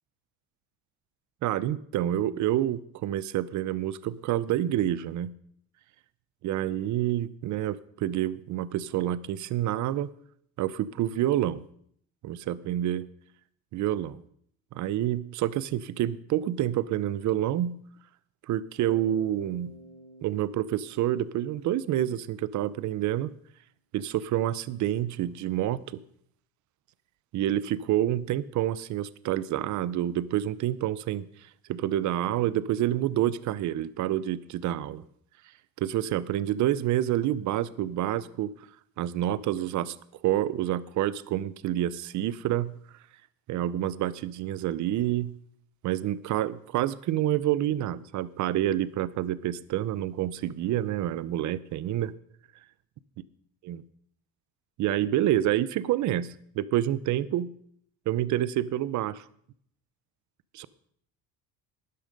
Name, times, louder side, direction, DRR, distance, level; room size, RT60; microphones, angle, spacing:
voice 1, 1.4-5.3 6.4-10.1 10.6-11.6 12.2-13.1 13.7-14.2 14.7-17.7 18.5-19.7 20.2-23.3 23.9-26.0 27.3-31.3 31.7-35.0 35.8-38.5 39.0-40.0 40.2-42.7 43.5-45.4 45.8-52.1 53.6-53.8 54.8-56.3 56.6-57.5 58.1-59.2 60.5-60.7, right 12 dB, 55° right, 18 dB, 0.7 m, -28 dB
Bass guitar, 18.8-22.9, right 1 dB, ahead, 2.2 m, -51 dB
12.5 x 10.0 x 5.2 m, 0.66 s
cardioid pair, 125°, 34 cm